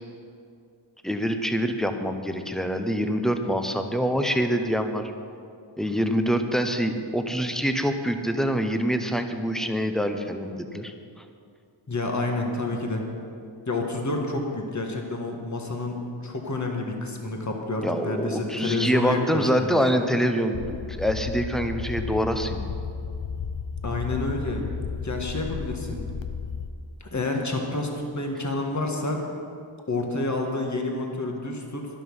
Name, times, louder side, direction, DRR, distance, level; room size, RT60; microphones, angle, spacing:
voice 1, 1.0-5.1 5.8-10.9 17.8-22.7, equal, ahead, 6 dB, 0.8 m, -25 dB
voice 2, 11.9-13.0 13.7-20.2 23.8-24.6 25.0-26.1 27.0-29.2 29.9-31.9, left 2 dB, 35° left, 2 dB, 1.7 m, -29 dB
sound 1, 20.5-26.7, left 6 dB, 65° left, 0.8 m, -33 dB
11.5 x 11.5 x 5.5 m, 2.4 s
wide cardioid pair, 90°, 48 cm